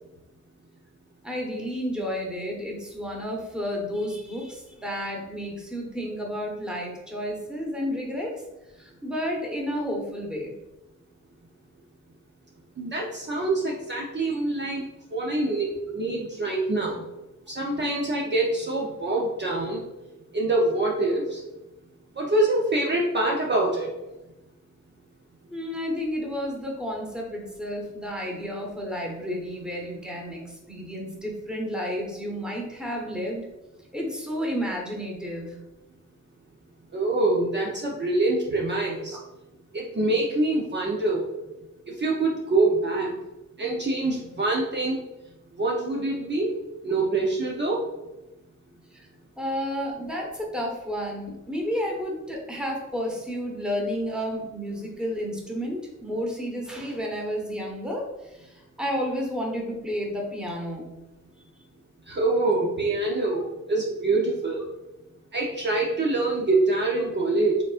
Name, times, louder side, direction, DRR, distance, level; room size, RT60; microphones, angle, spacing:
voice 1, 1.2-8.3 8.8-10.5 25.5-33.5 33.9-35.6 39.1-39.2 48.9-49.1 49.4-60.9, equal, 5° right, -1 dB, 1.1 m, -31 dB
voice 2, 12.8-17.0 17.5-19.8 20.3-21.4 22.2-23.9 36.9-39.2 39.7-41.3 41.9-43.1 43.6-45.0 45.6-46.6 46.8-47.8 62.1-64.7 65.3-67.6, right 2 dB, 35° right, -2 dB, 0.7 m, -25 dB
5.2 x 3.6 x 2.5 m, 0.99 s
cardioid pair, 100°, 31 cm